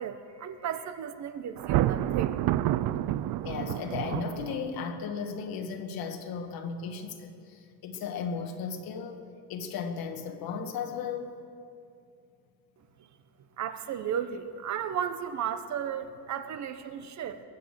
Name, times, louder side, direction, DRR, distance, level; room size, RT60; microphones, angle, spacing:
voice 1, 0.0-2.4 13.6-17.4, right 8 dB, 45° right, 11 dB, 1.0 m, -34 dB
Thunder, 1.6-4.9, right 14 dB, 60° right, 0.5 m, -29 dB
voice 2, 3.4-9.2 9.5-11.4, left 6 dB, 65° left, 5 dB, 1.6 m, -35 dB
21.5 x 8.1 x 7.6 m, 2.6 s
cardioid pair, 145°, 39 cm